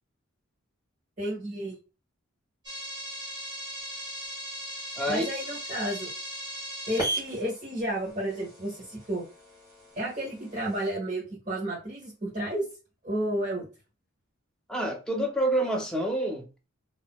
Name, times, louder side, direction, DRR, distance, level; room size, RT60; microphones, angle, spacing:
voice 1, 1.2-1.8 5.1-6.1 6.9-9.2 9.9-12.6 13.0-13.7, right 1 dB, 40° right, 1.2 m, -32 dB
sound 1, 2.6-10.9, right 1 dB, 20° right, 1.4 m, -38 dB
voice 2, 14.7-16.5, right 1 dB, 5° left, 0.6 m, -27 dB
3.9 x 2.8 x 2.2 m
head